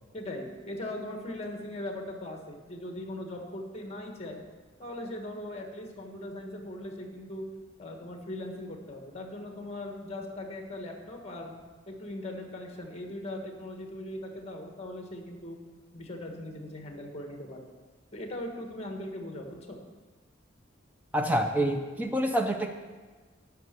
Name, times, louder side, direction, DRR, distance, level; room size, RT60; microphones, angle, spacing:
voice 1, 0.1-4.4 4.8-7.5 7.8-11.5 11.9-15.6 15.9-17.6 18.1-19.8, left 1 dB, 30° left, 3 dB, 1.5 m, -39 dB
voice 2, 21.1-22.7, right 1 dB, 10° right, 5 dB, 0.5 m, -27 dB
11.0 x 5.7 x 6.7 m, 1.4 s
head